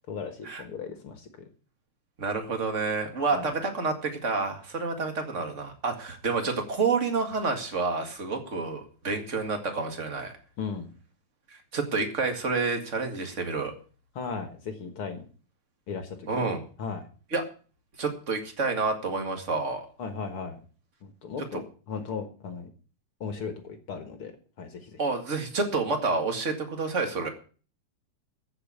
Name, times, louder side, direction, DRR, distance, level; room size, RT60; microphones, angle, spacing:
voice 1, 0.1-1.5 3.2-3.5 10.6-10.9 14.2-15.3 15.9-16.5 16.8-17.0 20.0-20.6 21.0-22.7 23.2-24.3 24.6-25.0, left 5 dB, 55° left, 8 dB, 1.8 m, -36 dB
voice 2, 2.2-10.3 11.5-13.7 16.3-16.6 17.3-17.4 18.0-19.9 21.5-21.6 25.0-27.3, right 4 dB, 30° right, 5 dB, 1.8 m, -29 dB
14.5 x 5.8 x 8.4 m, 0.39 s
omnidirectional pair, 3.7 m